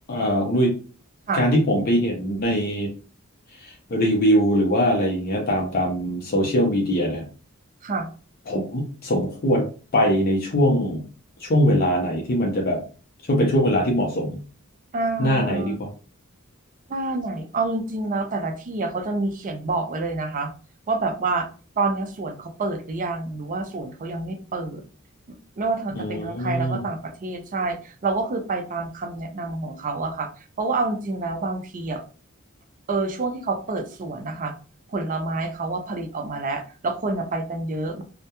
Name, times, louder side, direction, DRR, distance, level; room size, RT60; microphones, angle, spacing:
voice 1, 0.1-0.7 1.3-2.9 3.6-7.2 8.5-11.0 11.4-12.8 13.3-14.4 15.2-15.9 26.0-26.8, equal, 45° left, 0 dB, 0.5 m, -22 dB
voice 2, 14.9-15.8 16.9-20.5 20.9-21.5 21.8-24.8 25.6-30.3 30.6-32.0 32.9-34.5 34.9-38.0, right 3 dB, 40° right, 6 dB, 0.4 m, -27 dB
2.2 x 2.1 x 2.8 m, 0.37 s
head